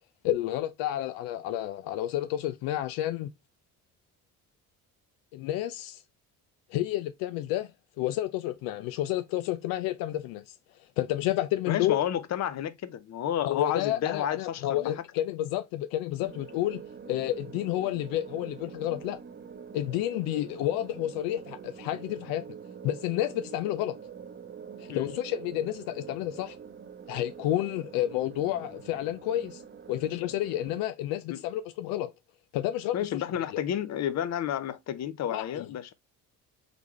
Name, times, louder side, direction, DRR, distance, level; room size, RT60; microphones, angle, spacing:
voice 1, 0.2-3.3 5.3-6.0 6.7-7.7 8.0-10.4 11.0-12.0 13.5-16.8 17.1-19.2 19.7-22.4 22.8-24.0 24.9-26.6 27.1-29.6 29.9-32.1 32.5-33.2 35.3-35.7, left 13 dB, 90° left, 0.5 m, -30 dB
voice 2, 11.7-14.9 24.9-25.1 31.3-31.4 32.9-35.9, left 10 dB, 50° left, 0.7 m, -31 dB
sound 1, 16.2-30.8, right 7 dB, 30° right, 0.8 m, -45 dB
4.0 x 3.4 x 3.0 m
cardioid pair, 90°, 34 cm